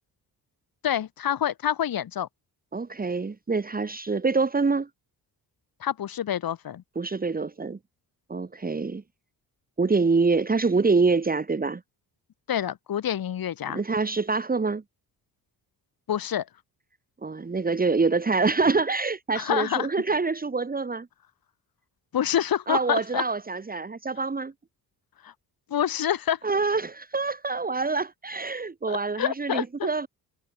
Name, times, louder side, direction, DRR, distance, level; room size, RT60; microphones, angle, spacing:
voice 1, 0.8-2.3 5.8-6.8 12.5-13.8 16.1-16.4 19.3-19.9 22.1-23.2 25.2-25.3 25.7-26.4 28.9-29.9, left 10 dB, 60° left, 3.4 m, -27 dB
voice 2, 2.7-4.9 7.0-7.8 8.3-9.0 9.8-11.8 13.7-14.8 17.2-21.1 22.7-24.5 26.4-30.1, right 4 dB, 20° right, 2.6 m, -25 dB
cardioid pair, 130°, 39 cm